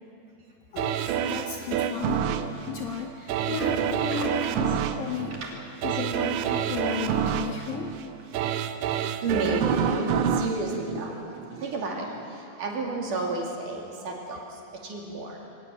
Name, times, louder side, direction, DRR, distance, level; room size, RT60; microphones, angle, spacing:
voice 1, 0.7-7.9, left 7 dB, 70° left, 3 dB, 2.4 m, -34 dB
sound 1, 0.8-11.7 12.2-12.3, right 8 dB, 80° right, 3.2 m, -28 dB
voice 2, 4.1-4.5 5.4-5.5 8.9-15.4, right 2 dB, 50° right, -1 dB, 3.8 m, -32 dB
23.5 x 17.5 x 9.2 m, 2.7 s
omnidirectional pair, 5.1 m